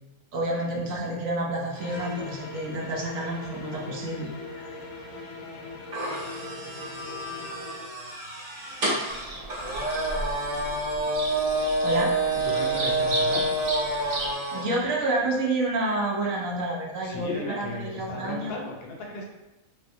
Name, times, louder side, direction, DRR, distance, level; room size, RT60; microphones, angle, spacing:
voice 1, 0.3-4.6 11.8-12.1 14.5-18.5, right 2 dB, 75° right, -2 dB, 1.0 m, -29 dB
sound 1, 1.7-7.9, left 3 dB, 85° left, 1.1 m, -40 dB
sound 2, 5.9-14.7, right 1 dB, 45° right, 1.1 m, -28 dB
Bird vocalization bird call bird song, 9.1-14.3, right 1 dB, 60° right, 0.4 m, -35 dB
voice 2, 12.4-13.7 17.0-19.2, left 2 dB, 55° left, 0 dB, 0.8 m, -35 dB
4.1 x 2.0 x 2.6 m, 1.0 s
omnidirectional pair, 1.4 m